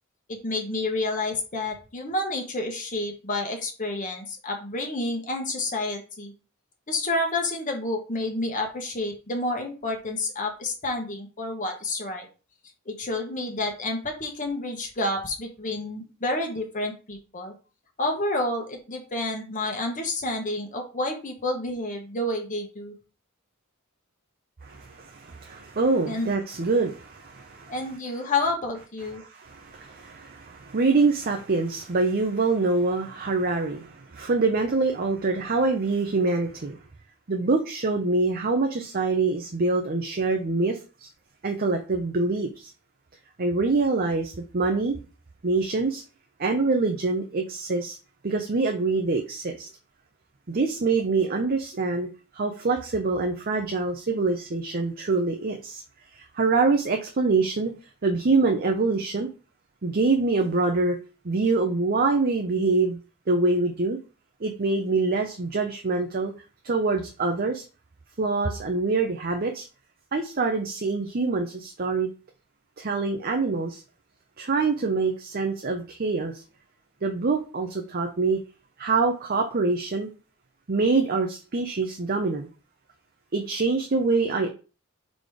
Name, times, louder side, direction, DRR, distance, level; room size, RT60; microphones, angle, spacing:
voice 1, 0.3-6.3 6.9-12.3 12.9-17.5 18.0-22.9 26.1-26.3 27.7-29.2, left 2 dB, 35° left, 2 dB, 1.1 m, -29 dB
voice 2, 24.6-27.7 29.2-36.8 37.3-41.1 41.4-42.7 43.4-45.0 45.4-46.0 46.4-48.0 48.2-49.7 50.5-52.1 52.3-55.8 56.1-57.7 58.0-59.3 59.8-61.0 61.2-63.0 63.3-64.0 64.4-66.3 66.6-67.6 68.2-69.6 70.1-72.1 72.8-73.8 74.4-76.4 77.0-78.4 78.8-80.1 80.7-82.5 83.3-84.5, right 3 dB, 45° right, 3 dB, 0.7 m, -25 dB
4.9 x 4.2 x 4.9 m, 0.35 s
head